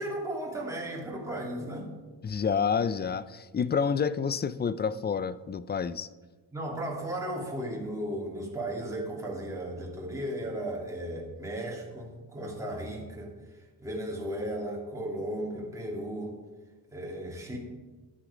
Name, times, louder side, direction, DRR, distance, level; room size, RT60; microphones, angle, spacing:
voice 1, 0.0-1.9 6.5-13.3 13.8-16.3 16.9-17.6, right 1 dB, 5° right, -3 dB, 2.9 m, -35 dB
voice 2, 2.2-6.1, left 6 dB, 25° left, 16 dB, 0.4 m, -29 dB
12.0 x 10.0 x 5.1 m, 1.3 s
cardioid pair, 105°, 43 cm